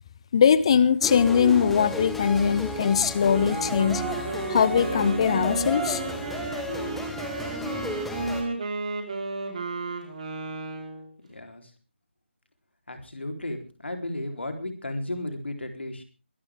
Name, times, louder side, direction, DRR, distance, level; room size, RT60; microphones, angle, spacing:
voice 1, 0.3-4.0 4.5-6.0, left 7 dB, 25° left, 17 dB, 0.8 m, -21 dB
sound 1, 1.0-8.4, left 1 dB, ahead, 1.3 m, -33 dB
Wind instrument woodwind instrument, 3.2-11.1, right 3 dB, 35° right, 4.4 m, -33 dB
voice 2, 11.3-11.6 12.9-16.0, left 1 dB, 65° left, 5 dB, 3.8 m, -34 dB
22.5 x 12.5 x 3.6 m, 0.34 s
figure-of-eight pair, 155°, 6 cm